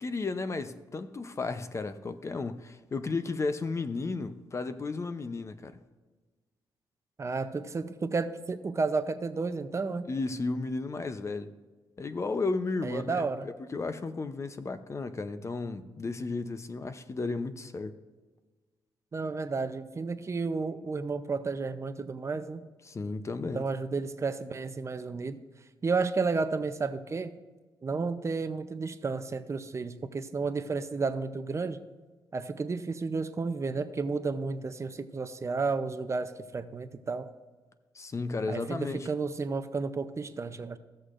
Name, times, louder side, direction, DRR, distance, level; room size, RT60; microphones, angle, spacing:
voice 1, 0.0-5.8 10.1-11.5 12.0-18.0 22.8-23.7 37.9-39.1, left 3 dB, 35° left, 0.6 m, -34 dB
voice 2, 7.2-10.1 12.8-13.5 19.1-22.6 23.5-25.4 25.8-27.3 27.8-31.8 32.3-37.3 38.5-40.8, right 4 dB, 35° right, 0.6 m, -32 dB
16.0 x 6.5 x 2.5 m
cardioid pair, 85°, 9 cm